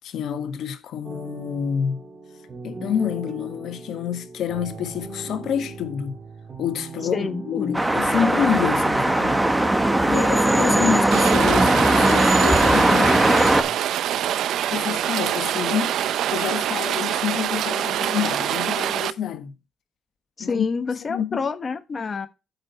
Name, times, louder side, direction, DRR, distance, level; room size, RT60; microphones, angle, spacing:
voice 1, 0.0-2.0 2.6-6.2 6.6-9.4 10.1-13.1 14.7-16.0 16.3-19.5 20.4-20.7 21.1-21.5, left 8 dB, 75° left, 1.4 m, -28 dB
sound 1, 1.0-13.8, right 3 dB, 40° right, 2.7 m, -38 dB
voice 2, 7.1-7.8 20.4-22.3, left 5 dB, 35° left, 1.1 m, -28 dB
sound 2, 7.7-13.6, right 1 dB, 10° right, 1.2 m, -19 dB
Rain, 11.1-19.1, right 11 dB, 80° right, 0.6 m, -25 dB
8.8 x 5.6 x 4.3 m
cardioid pair, 90°, 0 cm